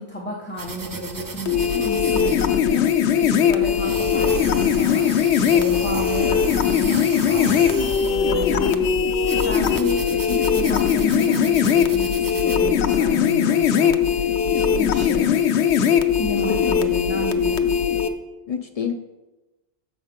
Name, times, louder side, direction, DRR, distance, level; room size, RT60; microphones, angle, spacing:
voice 1, 0.0-8.9 9.4-15.3 16.2-17.6, equal, 10° left, -3 dB, 0.8 m, -32 dB
sound 1, 0.6-12.6, right 3 dB, 30° right, 0.4 m, -36 dB
sound 2, 1.5-18.1, left 8 dB, 85° left, 0.9 m, -20 dB
voice 2, 16.3-16.7 18.5-18.9, left 7 dB, 65° left, 6 dB, 0.3 m, -27 dB
7.0 x 5.1 x 5.1 m, 1.1 s
omnidirectional pair, 1.1 m